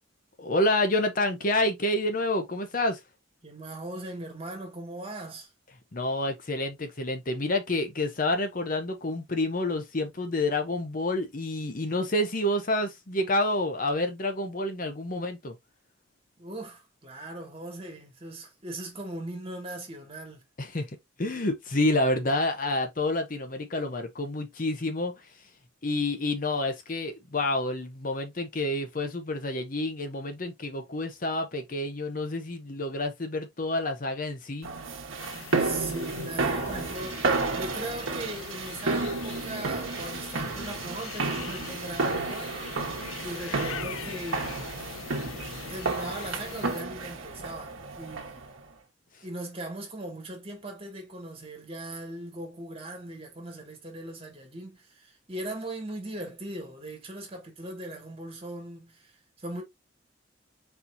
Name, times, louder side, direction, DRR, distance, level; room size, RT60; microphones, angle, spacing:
voice 1, 0.4-3.0 5.9-15.6 20.6-25.2 25.8-34.7, left 1 dB, 40° left, 0.8 m, -28 dB
voice 2, 3.4-5.5 16.4-20.4 35.6-42.6 43.2-44.7 45.7-48.5 49.2-59.1 59.4-59.6, right 1 dB, 30° right, 1.8 m, -39 dB
sound 1, 34.6-48.5, right 3 dB, 85° right, 1.1 m, -32 dB
sound 2, 35.2-46.8, left 8 dB, 85° left, 0.4 m, -42 dB
4.4 x 4.2 x 2.5 m
head